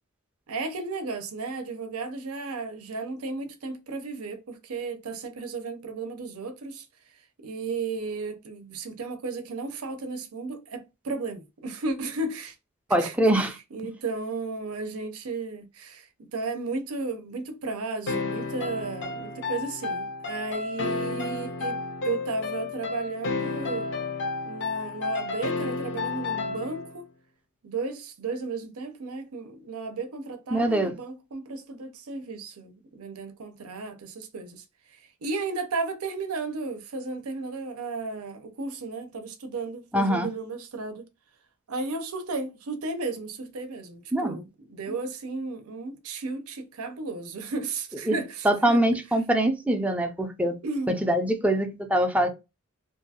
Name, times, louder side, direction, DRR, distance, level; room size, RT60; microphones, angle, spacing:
voice 1, 0.5-6.9 7.4-12.5 13.0-21.8 22.0-23.9 24.5-27.1 27.6-34.6 34.9-41.1 41.7-48.8 50.6-51.0, right 3 dB, 85° right, 0.6 m, -34 dB
voice 2, 12.9-13.6 30.5-30.9 39.9-40.3 44.1-44.4 48.1-48.2 48.4-50.6 50.9-52.3, right 1 dB, 5° right, 0.4 m, -23 dB
sound 1, 18.1-27.0, left 3 dB, 60° left, 0.6 m, -31 dB
2.6 x 2.3 x 2.7 m
head